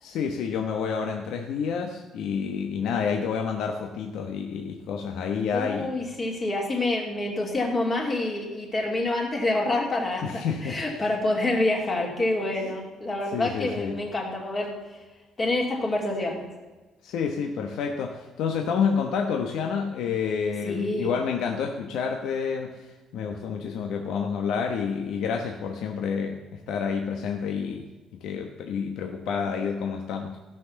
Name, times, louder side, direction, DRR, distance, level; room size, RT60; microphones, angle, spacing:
voice 1, 0.0-5.9 10.2-11.0 13.3-14.0 17.0-27.9 28.2-30.4, left 6 dB, 70° left, 3 dB, 1.1 m, -29 dB
voice 2, 5.5-14.8 15.4-16.5 20.6-21.1, left 2 dB, 25° left, 0 dB, 2.6 m, -27 dB
15.0 x 6.1 x 6.9 m, 1.2 s
cardioid pair, 160°, 0 cm